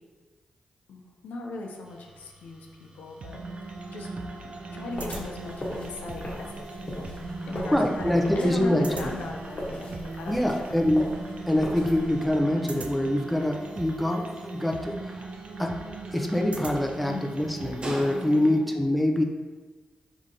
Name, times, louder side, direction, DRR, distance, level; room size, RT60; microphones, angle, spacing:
voice 1, 0.9-4.1 4.4-7.2 7.5-11.0 17.1-17.3 18.4-18.7, left 3 dB, 90° left, 1 dB, 0.6 m, -39 dB
sound 1, 1.8-18.7, right 1 dB, 40° right, 1.1 m, -48 dB
sound 2, 3.2-18.6, right 3 dB, 55° right, 0.5 m, -39 dB
sound 3, 4.9-12.4, left 1 dB, 50° left, 1.2 m, -39 dB
voice 2, 7.5-9.1 10.3-11.1 11.5-15.3 15.6-15.8 16.1-19.2, left 1 dB, ahead, 2 dB, 0.6 m, -25 dB
4.9 x 2.7 x 3.8 m, 1.3 s
cardioid pair, 60°, 3 cm